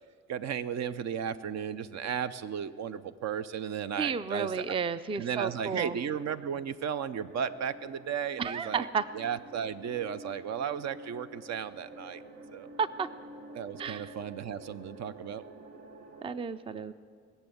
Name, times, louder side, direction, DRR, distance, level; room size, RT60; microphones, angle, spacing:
voice 1, 0.3-4.6 5.1-8.9 9.1-12.2 12.5-12.7 13.5-15.4, right 8 dB, 60° right, 13 dB, 0.6 m, -35 dB
voice 2, 4.0-6.0 8.4-9.1 12.8-13.1 13.8-14.1 16.2-16.9, right 6 dB, 20° right, 15 dB, 0.4 m, -32 dB
sound 1, 6.9-16.3, equal, 85° right, 1.5 m, -50 dB
20.5 x 7.2 x 9.2 m, 2.1 s
cardioid pair, 90°, 30 cm